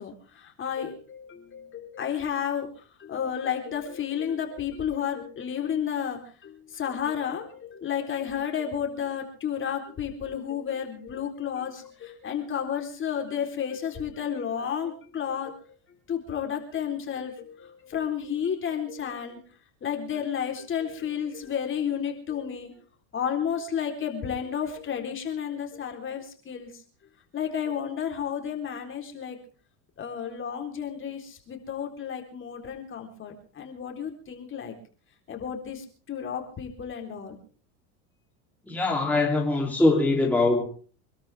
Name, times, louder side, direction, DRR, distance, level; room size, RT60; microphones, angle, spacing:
voice 1, 0.0-2.7 3.0-15.6 16.1-19.4 19.8-22.7 23.1-26.7 27.3-29.4 30.0-34.8 35.3-37.4, left 8 dB, 30° left, 3.9 m, -32 dB
voice 2, 38.7-40.7, left 2 dB, 5° left, 3.1 m, -22 dB
26.0 x 13.0 x 3.5 m
supercardioid pair, 120°, 39 cm